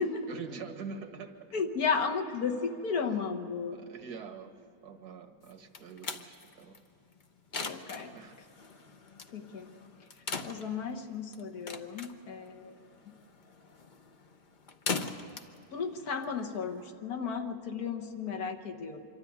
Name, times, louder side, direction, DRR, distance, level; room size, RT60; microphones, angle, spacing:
voice 1, 0.3-1.5 3.7-4.5 4.8-6.8 8.1-8.4, right 5 dB, 70° right, 6 dB, 1.8 m, -44 dB
voice 2, 1.5-3.8 7.6-8.1 9.3-9.7 10.5-12.8 15.7-19.0, left 5 dB, 65° left, 2 dB, 1.7 m, -34 dB
sound 1, 5.4-16.9, left 4 dB, 40° left, 0.8 m, -41 dB
25.0 x 13.0 x 9.4 m, 2.8 s
omnidirectional pair, 1.7 m